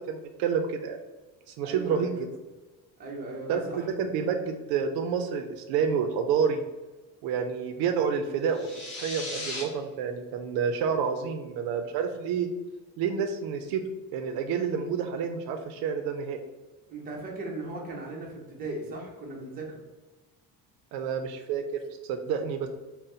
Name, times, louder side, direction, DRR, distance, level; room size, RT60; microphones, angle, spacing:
voice 1, 0.1-1.0 1.5-2.3 3.5-6.6 7.2-8.7 8.9-12.5 13.0-13.8 14.1-16.4 20.9-22.7, right 6 dB, 85° right, 7 dB, 0.5 m, -29 dB
voice 2, 1.6-2.2 3.0-3.9 16.9-19.8, right 2 dB, 25° right, -2 dB, 0.8 m, -38 dB
sound 1, 8.5-9.6, left 2 dB, 45° left, 1.0 m, -37 dB
4.0 x 2.1 x 3.8 m, 1.2 s
cardioid pair, 175°, 35 cm